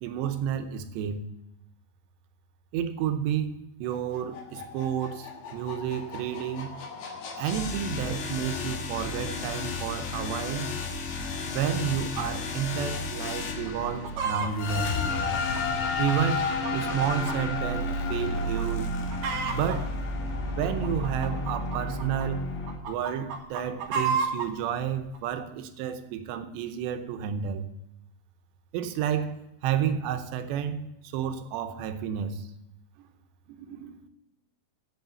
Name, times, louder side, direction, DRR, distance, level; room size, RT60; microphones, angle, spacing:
voice 1, 0.0-1.2 2.7-6.8 7.4-10.7 11.5-15.0 16.0-18.9 19.5-20.0 20.5-22.5 22.9-27.7 28.7-32.5 33.5-34.0, right 9 dB, 90° right, 3.1 m, -31 dB
sound 1, 3.9-22.8, left 3 dB, 70° left, 3.1 m, -32 dB
Chicken rooster, 13.7-14.5 15.1-17.4 17.7-17.8 18.4-18.6 18.9-19.8 20.5-22.2 22.7-24.5 25.1-25.2, right 5 dB, 65° right, 2.6 m, -31 dB
8.2 x 8.1 x 7.0 m
omnidirectional pair, 4.8 m